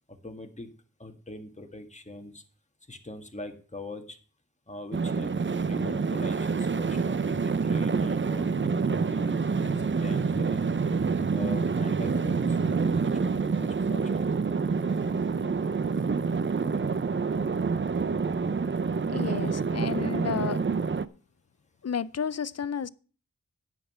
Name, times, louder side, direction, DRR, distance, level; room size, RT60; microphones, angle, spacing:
voice 1, 0.2-0.7 1.0-2.4 2.9-4.2 4.7-5.3 5.6-11.1 11.3-14.3, left 2 dB, 20° left, 1.7 m, -42 dB
sound 1, 4.9-21.1, right 5 dB, 35° right, 0.6 m, -27 dB
voice 2, 19.1-20.6 21.8-22.9, left 7 dB, 50° left, 0.5 m, -32 dB
10.5 x 7.6 x 5.6 m
wide cardioid pair, 75°, 32 cm